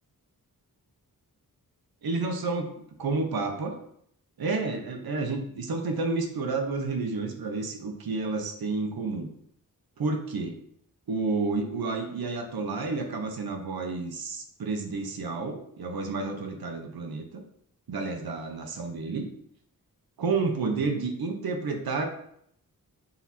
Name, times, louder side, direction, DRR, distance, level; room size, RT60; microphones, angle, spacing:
voice 1, 2.0-2.7 3.0-3.8 4.4-9.3 10.0-10.5 11.1-17.4 17.9-19.3 20.2-22.1, right 3 dB, 80° right, 4 dB, 1.2 m, -30 dB
7.0 x 4.2 x 4.3 m, 0.68 s
wide cardioid pair, 105°, 36 cm